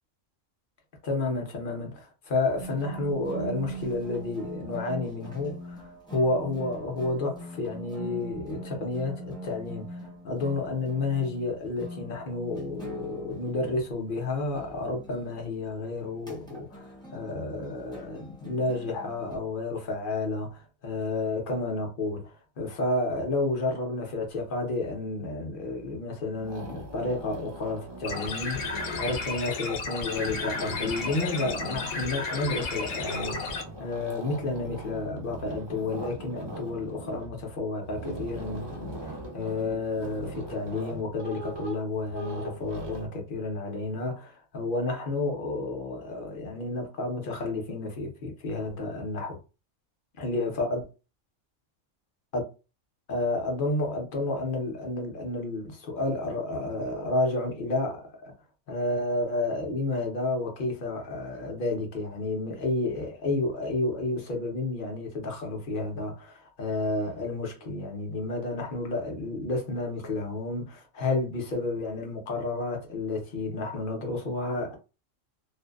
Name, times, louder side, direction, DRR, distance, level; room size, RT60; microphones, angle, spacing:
voice 1, 1.0-33.4 33.8-49.4 50.2-50.8 52.3-52.4 53.1-58.3 58.7-74.8, left 2 dB, 50° left, 0.8 m, -31 dB
sound 1, 2.5-19.4, right 2 dB, 5° left, 0.6 m, -42 dB
sound 2, 25.6-26.0 26.3-29.4 29.8-32.0 32.8-43.1, right 1 dB, 35° right, 0.4 m, -41 dB
sound 3, 28.0-33.6, left 4 dB, 80° left, 1.0 m, -33 dB
2.5 x 2.3 x 2.3 m
omnidirectional pair, 1.3 m